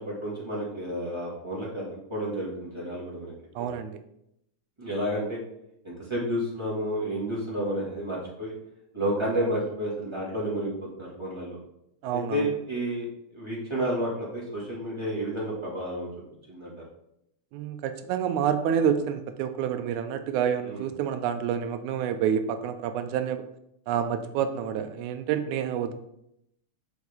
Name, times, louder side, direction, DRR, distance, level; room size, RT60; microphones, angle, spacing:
voice 1, 0.0-1.8 2.1-3.8 4.8-5.4 5.8-8.5 8.9-11.6 12.1-13.1 13.3-16.1 16.5-16.7 20.6-20.8, right 1 dB, 20° right, -7 dB, 0.8 m, -31 dB
voice 2, 3.6-4.0 12.0-12.5 17.5-23.4 23.9-25.9, right 8 dB, 80° right, 9 dB, 1.9 m, -28 dB
6.5 x 5.2 x 3.5 m, 0.79 s
omnidirectional pair, 3.5 m